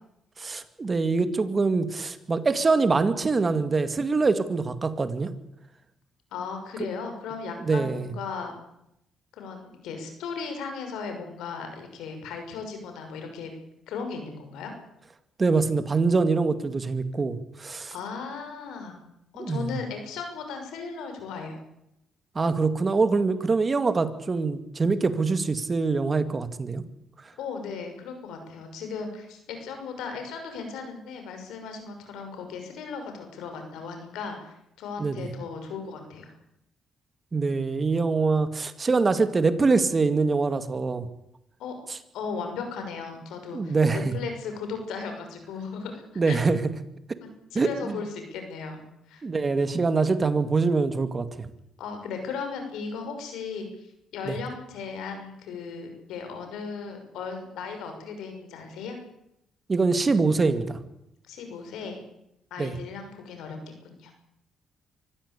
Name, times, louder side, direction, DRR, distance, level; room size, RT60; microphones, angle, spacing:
voice 1, 0.4-5.3 7.6-8.1 15.4-17.9 19.4-19.7 22.4-26.8 35.0-35.3 37.3-41.1 43.5-44.0 46.2-46.6 47.5-47.7 49.2-51.5 54.3-54.4 59.7-60.8 62.6-62.7, right 4 dB, 30° right, 11 dB, 2.2 m, -24 dB
voice 2, 6.3-8.5 9.3-13.5 13.9-14.7 17.9-19.0 19.3-21.6 27.4-36.3 41.6-41.7 42.1-46.4 47.5-48.8 49.1-49.2 51.8-59.0 61.3-62.0 62.5-63.6 63.8-64.1, left 5 dB, 85° left, 5 dB, 6.1 m, -36 dB
24.5 x 15.5 x 8.4 m, 0.82 s
cardioid pair, 90°, 0 cm